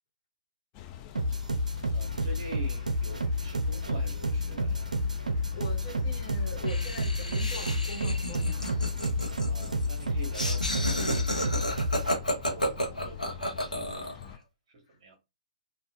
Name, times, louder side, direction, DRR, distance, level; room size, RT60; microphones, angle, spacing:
sound 1, 0.7-14.4, left 9 dB, 25° left, 0.4 m, -45 dB
sound 2, 1.2-12.1, left 1 dB, 75° right, 0.5 m, -30 dB
voice 1, 1.9-4.9 9.4-15.2, right 2 dB, 45° right, 1.1 m, -46 dB
voice 2, 5.5-8.8 14.9-15.2, left 1 dB, 40° left, 1.2 m, -42 dB
Laughter, 6.6-14.2, equal, 90° left, 1.0 m, -32 dB
3.3 x 2.4 x 2.6 m
figure-of-eight pair, 125°, 4 cm